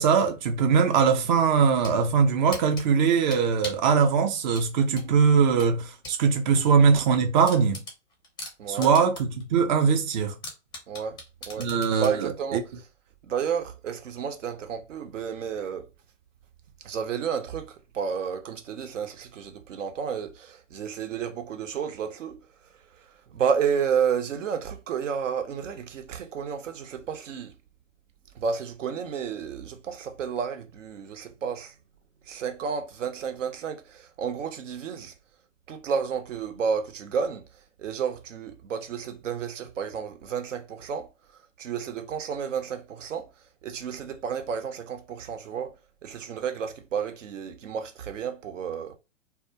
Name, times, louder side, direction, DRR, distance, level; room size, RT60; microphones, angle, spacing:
voice 1, 0.0-7.8 8.7-10.3 11.6-12.6, right 6 dB, 40° right, 0.5 m, -21 dB
sound 1, 1.5-2.0 2.5-3.9 4.5-6.2 6.6-6.7 7.0-7.1 7.5-9.4 9.8-9.9 10.4-12.2, left 2 dB, 10° left, 0.5 m, -39 dB
voice 2, 8.6-8.9 10.9-11.7 12.0-12.6 13.2-15.9 16.8-22.5 22.9-27.6 28.3-31.7 32.3-35.1 35.7-41.1 41.6-43.3 43.6-45.7 46.0-49.0, right 7 dB, 75° right, 0.7 m, -31 dB
2.3 x 2.0 x 2.6 m
hypercardioid pair, 120°, 38 cm